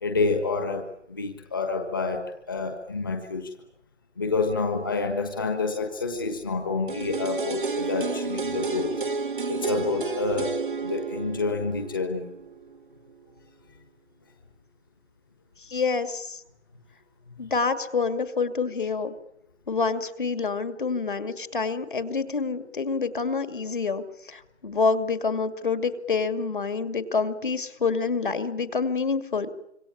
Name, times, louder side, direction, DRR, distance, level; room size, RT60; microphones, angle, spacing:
voice 1, 0.0-3.5 4.2-9.0 9.5-10.5 10.8-12.3, left 4 dB, 20° left, 4 dB, 1.4 m, -28 dB
sound 1, 6.9-12.8 13.1-13.2, right 4 dB, 45° right, 1.2 m, -31 dB
voice 2, 15.6-16.4 17.4-19.1 19.7-29.5, left 4 dB, 45° left, 9 dB, 2.5 m, -27 dB
26.5 x 25.0 x 8.7 m, 0.77 s
hypercardioid pair, 180°, 35 cm